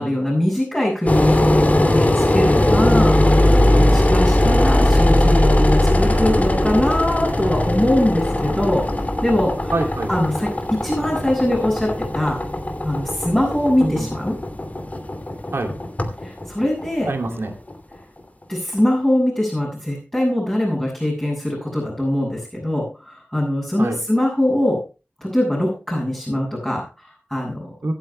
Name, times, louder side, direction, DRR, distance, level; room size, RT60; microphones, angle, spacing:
voice 1, 0.0-1.5 1.8-9.7 10.1-12.4 12.8-14.4 16.2-17.1 18.5-24.8 25.2-27.7, left 1 dB, 15° left, -6 dB, 7.2 m, -22 dB
Engine, 1.1-18.0, left 1 dB, 40° left, 2.5 m, -19 dB
voice 2, 4.4-4.8 9.7-10.1 13.8-14.1 15.5-15.7 17.0-17.5 23.8-24.0 27.8-27.9, right 2 dB, 80° right, 3 dB, 2.5 m, -25 dB
24.0 x 9.0 x 2.2 m, 0.32 s
wide cardioid pair, 65°, 4 cm